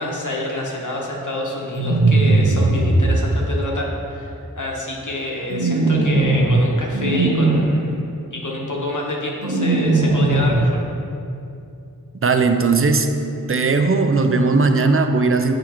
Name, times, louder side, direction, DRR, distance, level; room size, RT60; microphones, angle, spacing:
voice 1, 0.0-8.0 8.3-10.8, left 1 dB, 55° left, -2 dB, 1.0 m, -27 dB
sound 1, 1.7-3.2 5.5-6.6 6.9-7.6 9.4-10.6, right 2 dB, 85° right, 0.7 m, -18 dB
voice 2, 12.2-13.2 13.5-15.5, right 3 dB, 40° right, 7 dB, 0.5 m, -17 dB
7.5 x 4.8 x 3.0 m, 2.6 s
wide cardioid pair, 40°, 35 cm